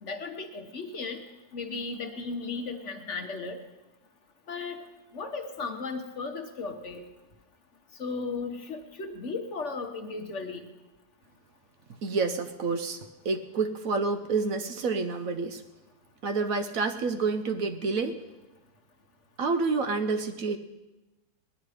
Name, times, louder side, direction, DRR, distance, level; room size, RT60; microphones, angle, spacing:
voice 1, 0.0-1.2 1.5-3.6 4.5-4.8 5.1-7.0 8.0-10.6, left 4 dB, 50° left, 5 dB, 1.2 m, -35 dB
voice 2, 12.0-15.6 16.2-18.2 19.4-20.6, right 4 dB, 65° right, 8 dB, 1.1 m, -28 dB
18.5 x 11.0 x 4.9 m, 1.1 s
omnidirectional pair, 1.7 m